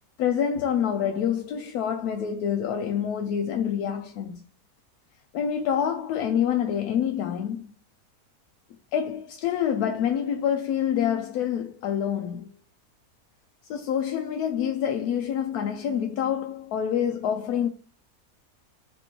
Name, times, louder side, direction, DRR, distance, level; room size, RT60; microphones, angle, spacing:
voice 1, 0.2-4.4 5.3-7.7 8.9-12.5 13.7-17.7, left 8 dB, 90° left, 1.1 m, -27 dB
4.4 x 3.1 x 3.0 m
omnidirectional pair, 1.6 m